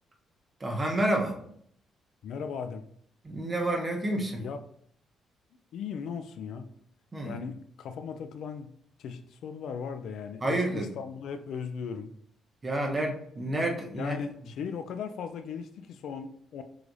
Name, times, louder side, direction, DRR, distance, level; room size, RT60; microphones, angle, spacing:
voice 1, 0.6-1.4 3.2-4.4 7.1-7.4 10.4-10.9 12.6-14.2, right 1 dB, 30° right, 2 dB, 0.9 m, -29 dB
voice 2, 2.2-2.8 4.4-4.6 5.7-6.7 7.2-8.7 9.0-12.1 13.9-16.6, left 6 dB, 75° left, 8 dB, 0.3 m, -37 dB
4.7 x 3.3 x 2.6 m, 0.65 s
cardioid pair, 90°, 0 cm